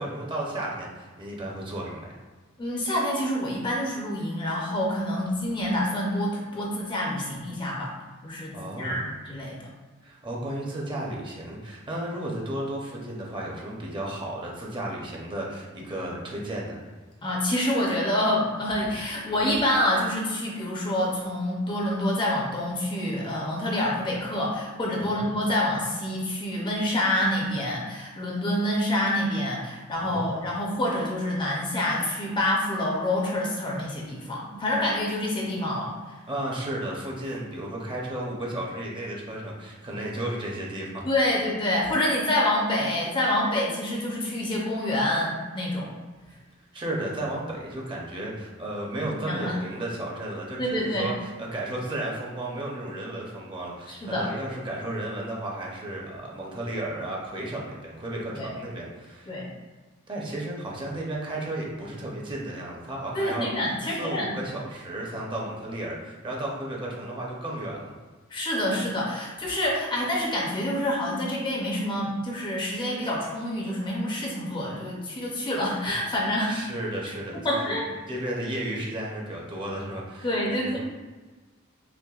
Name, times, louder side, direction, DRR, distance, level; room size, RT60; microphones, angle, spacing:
voice 1, 0.0-2.2 8.5-9.0 10.0-16.9 25.0-25.3 30.0-30.3 36.3-41.0 46.7-59.3 60.1-63.5 63.8-67.9 76.5-80.7, right 1 dB, 25° right, -3 dB, 0.6 m, -33 dB
voice 2, 2.6-7.9 8.2-9.7 17.2-35.9 41.0-45.9 49.2-49.6 50.6-51.1 53.9-54.3 58.3-58.5 59.3-59.5 63.1-64.3 68.3-76.6 77.4-77.9 80.2-80.8, left 1 dB, 25° left, -3 dB, 0.5 m, -27 dB
5.7 x 2.1 x 2.4 m, 1.3 s
head